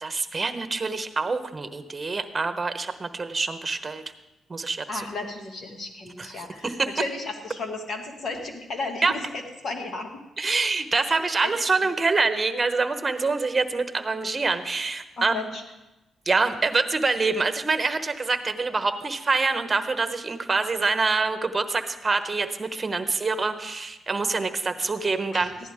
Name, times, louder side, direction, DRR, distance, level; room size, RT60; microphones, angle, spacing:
voice 1, 0.0-4.0 4.5-5.0 6.2-6.9 9.0-9.1 10.4-15.3 16.3-25.6, right 3 dB, 30° right, 9 dB, 1.1 m, -26 dB
voice 2, 4.9-10.1 11.1-11.5 11.8-11.9 15.2-15.6 25.3-25.5, left 3 dB, 55° left, 3 dB, 2.1 m, -34 dB
15.5 x 11.0 x 3.6 m, 1.0 s
supercardioid pair, 65°, 0 cm